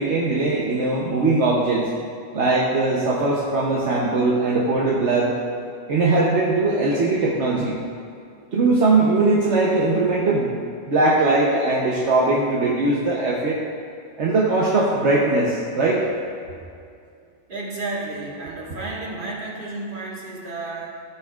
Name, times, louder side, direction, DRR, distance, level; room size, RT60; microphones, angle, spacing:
voice 1, 0.0-1.9 2.3-5.4 5.9-7.8 8.5-10.6 10.9-13.6 14.2-16.0, right 2 dB, 70° right, -4 dB, 1.2 m, -20 dB
voice 2, 17.5-21.0, right 2 dB, 45° right, -5 dB, 1.8 m, -32 dB
14.0 x 7.0 x 2.4 m, 2.4 s
omnidirectional pair, 1.2 m